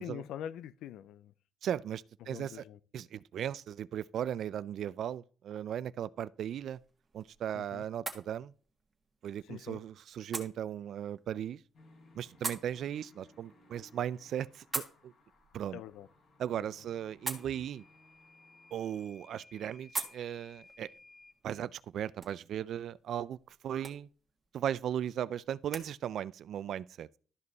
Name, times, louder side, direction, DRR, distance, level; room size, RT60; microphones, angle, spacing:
voice 1, 0.0-1.3 2.2-2.8 7.5-7.8 9.4-9.8 15.7-16.1 16.5-16.7, left 10 dB, 90° left, 0.5 m, -44 dB
voice 2, 1.6-2.6 2.9-6.8 7.1-8.5 9.2-11.6 12.2-15.1 15.5-15.8 16.4-17.8 18.7-20.9 21.4-23.4 23.6-24.1 24.5-27.2, right 10 dB, 70° right, 0.4 m, -37 dB
sound 1, 6.4-25.9, right 3 dB, 25° right, 1.6 m, -46 dB
sound 2, 11.7-19.1, left 2 dB, 65° left, 3.1 m, -62 dB
Microwave oven / Alarm, 17.3-21.4, left 3 dB, 15° left, 1.5 m, -59 dB
12.5 x 5.3 x 4.0 m
cardioid pair, 105°, 0 cm